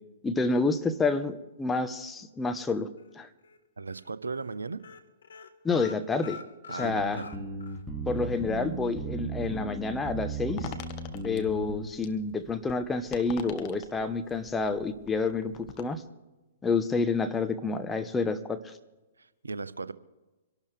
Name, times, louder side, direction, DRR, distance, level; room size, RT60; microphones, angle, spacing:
voice 1, 0.2-2.9 3.1-3.3 5.6-6.4 6.7-7.2 8.1-10.7 11.2-16.0 16.6-18.7, left 4 dB, 10° left, 8 dB, 1.1 m, -29 dB
sound 1, 3.0-3.6 3.9-4.1 4.3-4.5 4.8-7.8 8.2-8.3 8.6-8.7, left 5 dB, 70° left, 1.6 m, -45 dB
voice 2, 3.8-4.8 6.7-7.4 19.2-19.9, right 4 dB, 85° right, 15 dB, 0.7 m, -37 dB
sound 2, 6.8-11.9, right 3 dB, 5° right, 2.4 m, -36 dB
sound 3, 10.6-15.8, left 10 dB, 35° left, 1.5 m, -45 dB
26.0 x 12.0 x 3.4 m, 1.1 s
figure-of-eight pair, 120°, 0 cm